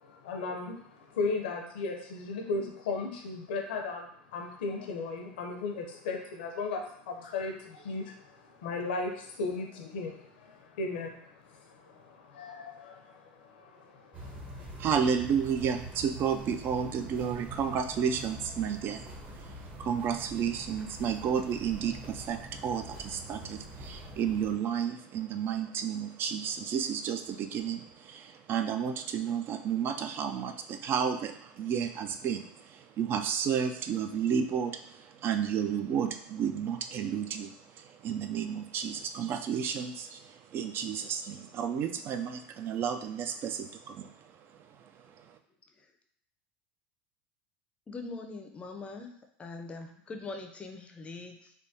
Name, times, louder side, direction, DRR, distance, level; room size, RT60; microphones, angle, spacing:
voice 1, 0.0-4.1 4.3-14.6, left 3 dB, 80° left, 2 dB, 0.6 m, -36 dB
sound 1, 14.1-24.5, right 1 dB, 30° right, 0.8 m, -45 dB
voice 2, 14.8-19.0 19.8-27.8 28.1-32.4 33.0-34.7 35.2-37.5 38.0-40.2 40.5-44.1, right 7 dB, 45° right, 7 dB, 0.3 m, -31 dB
voice 3, 47.9-49.1 49.4-51.5, left 3 dB, 20° left, 3 dB, 0.5 m, -42 dB
3.4 x 2.2 x 2.7 m, 0.70 s
hypercardioid pair, 100°, 5 cm